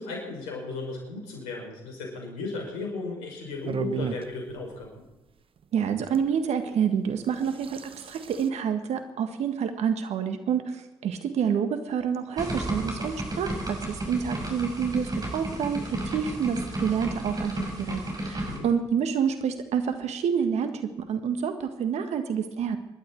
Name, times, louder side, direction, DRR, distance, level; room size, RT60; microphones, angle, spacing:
voice 1, 0.0-5.0 18.4-18.7, left 3 dB, 80° left, 0 dB, 5.8 m, -35 dB
sound 1, 3.6-4.3 6.1-6.2 7.2-8.5, right 6 dB, 45° right, 1.0 m, -33 dB
voice 2, 5.7-22.8, right 7 dB, 60° right, 8 dB, 1.7 m, -28 dB
sound 2, 12.4-18.6, right 1 dB, 30° right, 5.9 m, -33 dB
26.0 x 12.0 x 4.7 m, 1.0 s
hypercardioid pair, 45°, 12 cm